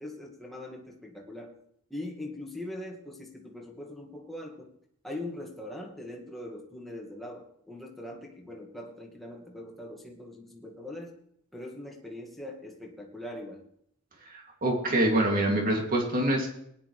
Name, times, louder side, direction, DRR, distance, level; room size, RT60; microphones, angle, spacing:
voice 1, 0.0-1.5 1.9-4.7 5.0-11.2 11.5-13.6, left 1 dB, ahead, -1 dB, 2.0 m, -41 dB
voice 2, 14.3-16.5, right 1 dB, 40° right, 0 dB, 2.7 m, -25 dB
18.5 x 10.5 x 3.3 m, 0.70 s
head